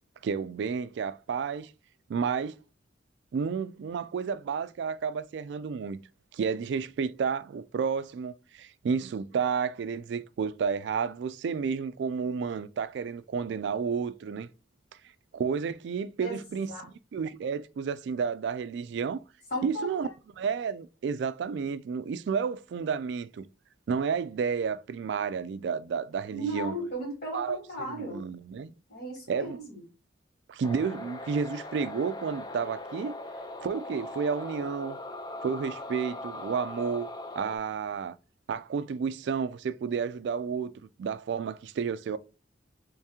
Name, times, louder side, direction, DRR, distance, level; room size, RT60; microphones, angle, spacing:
voice 1, 0.2-1.7 2.1-2.5 3.3-6.0 6.3-14.5 15.3-19.2 19.6-20.1 20.4-23.5 23.9-26.7 27.3-28.7 29.3-29.6 30.5-33.2 33.6-35.0 35.4-37.1 37.4-38.2 38.5-40.7 41.0-42.2, right 6 dB, 65° right, 0.3 m, -31 dB
voice 2, 19.5-19.9 26.3-28.2 28.9-29.8, right 1 dB, 55° left, 2.0 m, -35 dB
sound 1, 30.6-37.6, left 1 dB, 20° left, 0.4 m, -40 dB
3.5 x 3.2 x 2.8 m
head